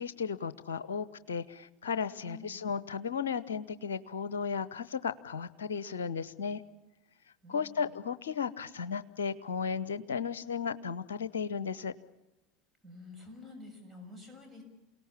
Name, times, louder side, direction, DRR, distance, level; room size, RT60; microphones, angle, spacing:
voice 1, 0.0-6.6 7.5-11.9, left 6 dB, 70° left, 16 dB, 0.9 m, -35 dB
voice 2, 2.2-2.6 7.4-7.9 12.8-14.6, left 2 dB, ahead, 2 dB, 6.8 m, -49 dB
28.5 x 18.0 x 7.2 m, 1.0 s
figure-of-eight pair, 75°, 0 cm